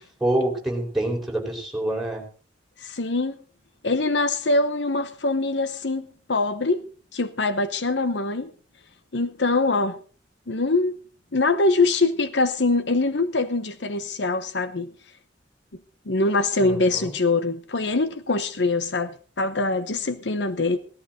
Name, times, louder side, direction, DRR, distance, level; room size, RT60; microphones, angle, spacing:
voice 1, 0.2-2.2 16.6-17.1, right 1 dB, ahead, -1 dB, 4.5 m, -26 dB
voice 2, 2.8-3.4 3.8-6.8 7.1-8.5 9.1-10.0 10.5-11.0 11.3-14.9 16.1-20.8, left 3 dB, 70° left, 12 dB, 1.0 m, -23 dB
17.0 x 14.0 x 3.9 m, 0.37 s
head